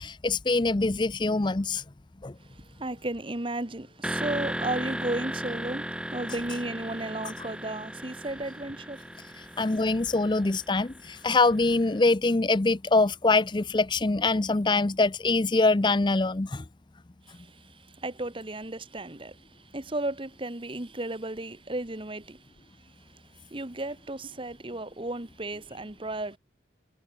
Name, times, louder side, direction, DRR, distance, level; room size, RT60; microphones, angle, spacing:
voice 1, 0.0-1.8 2.2-2.3 9.6-16.6, left 3 dB, 25° left, 0.6 m, -24 dB
voice 2, 2.8-9.0 17.3-17.7 18.0-19.4 19.7-22.4 23.5-26.4, right 2 dB, 30° right, 1.4 m, -34 dB
sound 1, 4.0-11.8, right 1 dB, 5° right, 6.3 m, -36 dB
head